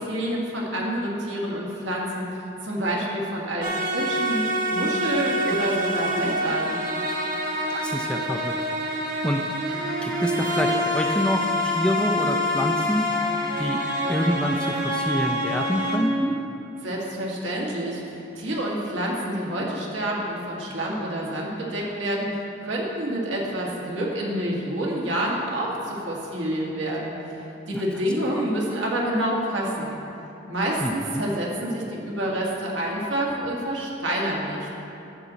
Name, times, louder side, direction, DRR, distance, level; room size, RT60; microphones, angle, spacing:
voice 1, 0.0-2.3 2.6-4.4 4.7-6.8 16.8-27.2 27.7-30.0 30.5-34.7, right 1 dB, 80° right, -3 dB, 1.8 m, -28 dB
sound 1, 3.6-16.0, equal, 40° right, 1.3 m, -26 dB
voice 2, 7.7-8.5 9.0-9.4 10.0-13.3 13.6-13.8 14.1-16.4 27.7-27.8 30.8-31.2, equal, 5° left, 2 dB, 0.4 m, -27 dB
11.0 x 7.4 x 4.0 m, 2.8 s
head